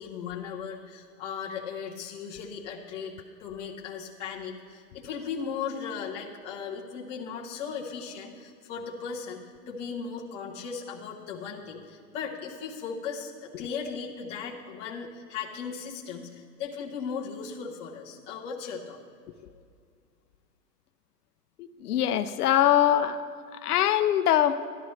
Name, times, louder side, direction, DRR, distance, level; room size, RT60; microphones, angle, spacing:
voice 1, 0.0-9.4 9.7-19.0, left 6 dB, 15° left, -5 dB, 0.6 m, -37 dB
voice 2, 21.8-23.2 23.6-24.6, left 11 dB, 65° left, 11 dB, 0.6 m, -22 dB
13.5 x 11.5 x 3.2 m, 2.2 s
hypercardioid pair, 155°, 49 cm